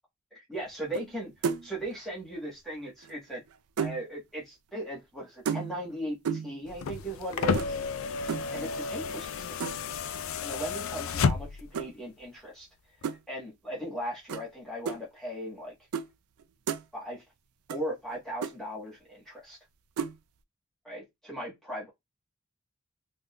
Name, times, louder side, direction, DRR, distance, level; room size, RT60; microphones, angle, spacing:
voice 1, 0.3-3.4 3.8-7.8 8.5-9.8 10.4-12.7 13.3-15.7 16.9-17.2 17.7-19.6 20.8-21.9, right 1 dB, ahead, 1.5 m, -38 dB
sound 1, 0.9-1.2 1.4-1.8 3.0-4.0 5.5-5.9 6.2-6.6 7.5-7.7 8.3-8.5 9.6-9.9 11.7-11.9 13.0-13.2 14.3-14.5 14.9-15.0 15.9-16.1 16.4-16.8 17.7-17.8 18.1-18.2 18.4-18.6 20.0-20.2, right 6 dB, 90° right, 0.4 m, -32 dB
sound 2, 6.7-11.8 13.0-13.1, left 5 dB, 70° left, 0.4 m, -31 dB
3.6 x 2.5 x 2.2 m
head